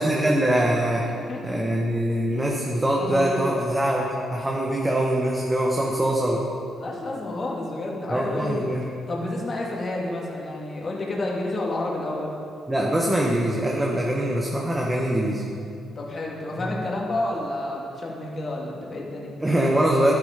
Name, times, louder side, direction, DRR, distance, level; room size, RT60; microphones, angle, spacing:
voice 1, 0.0-1.0 1.4-6.4 8.1-8.8 12.7-15.5 16.6-16.7 19.4-20.1, right 1 dB, 15° right, -2 dB, 1.4 m, -23 dB
voice 2, 1.0-1.6 2.3-2.4 3.0-3.7 6.8-8.6 9.1-12.3 16.0-19.3, left 2 dB, 40° left, -2 dB, 2.3 m, -30 dB
11.5 x 10.0 x 5.1 m, 2.5 s
cardioid pair, 90°, 0 cm